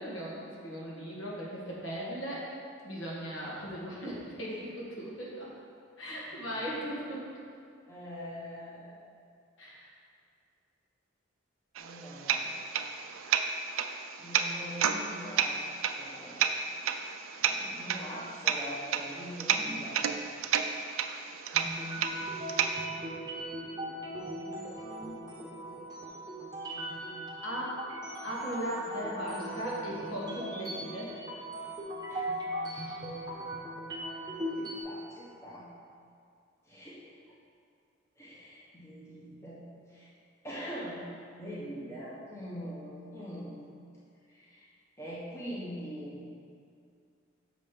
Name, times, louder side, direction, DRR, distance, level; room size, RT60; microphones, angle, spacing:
voice 1, 0.0-2.5 2.8-5.5 6.0-7.4 9.6-9.9 19.5-19.9 24.1-25.2 27.4-27.8 28.2-31.2 32.7-32.9, equal, 70° left, -6 dB, 1.9 m, -38 dB
voice 2, 7.9-9.1 11.8-12.5 14.2-15.6 15.9-16.5 17.4-20.0 32.1-32.3 34.5-35.7 36.6-37.0 38.2-40.1 40.4-41.0 41.3-43.6 44.3-44.7 45.0-46.2, equal, 15° left, -8 dB, 1.1 m, -43 dB
sound 1, 11.8-22.8, right 7 dB, 80° right, 0.4 m, -32 dB
sound 2, 21.5-34.8, right 1 dB, 20° right, 0.9 m, -39 dB
6.6 x 5.3 x 5.3 m, 2.3 s
head